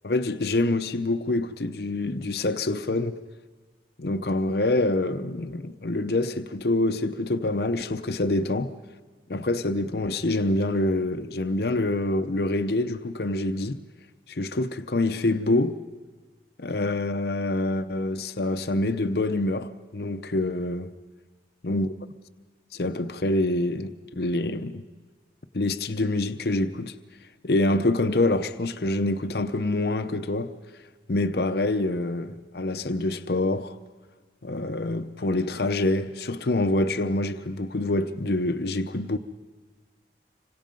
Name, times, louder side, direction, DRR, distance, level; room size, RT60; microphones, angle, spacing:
voice 1, 0.0-3.2 4.0-8.7 9.3-13.8 14.3-15.8 16.6-20.9 21.6-21.9 22.7-24.8 25.5-26.9 27.4-30.5 31.1-33.8 34.4-39.2, left 2 dB, 60° left, 0.7 m, -26 dB
26.0 x 24.5 x 5.3 m
head